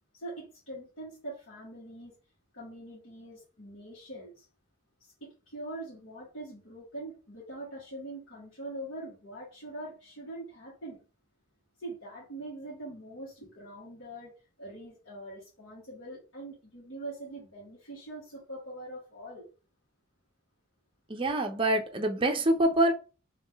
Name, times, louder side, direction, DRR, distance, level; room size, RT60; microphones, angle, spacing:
voice 1, 0.1-2.1 2.5-4.4 5.2-11.0 11.8-19.4, right 1 dB, 70° left, 1.7 m, -43 dB
voice 2, 21.1-22.9, right 1 dB, 25° right, 0.6 m, -25 dB
3.5 x 3.0 x 3.5 m
head